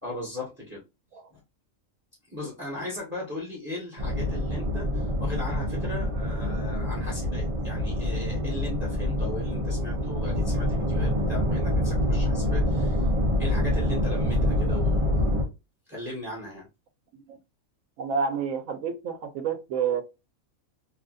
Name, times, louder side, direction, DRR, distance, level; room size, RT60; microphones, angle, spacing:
voice 1, 0.0-0.8 1.3-1.4 2.3-13.1 13.4-15.3 15.9-16.7, left 2 dB, 10° right, 1.0 m, -37 dB
sound 1, 4.0-15.4, left 1 dB, 35° right, 0.6 m, -26 dB
voice 2, 18.0-20.0, right 6 dB, 75° right, 1.0 m, -29 dB
3.2 x 2.5 x 2.4 m
omnidirectional pair, 1.4 m